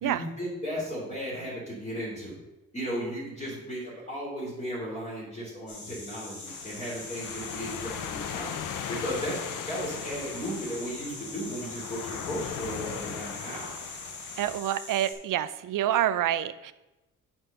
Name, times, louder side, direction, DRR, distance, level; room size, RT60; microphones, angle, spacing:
voice 1, 0.0-2.4 2.7-8.6 8.9-13.8, equal, 20° left, -7 dB, 2.8 m, -35 dB
sound 1, 5.7-15.1, left 3 dB, 65° left, 2.7 m, -42 dB
sound 2, 6.5-14.6, left 9 dB, 80° left, 0.6 m, -39 dB
voice 2, 14.4-16.7, right 12 dB, 80° right, 15 dB, 0.5 m, -27 dB
7.6 x 4.4 x 6.6 m, 1.0 s
cardioid pair, 110°, 32 cm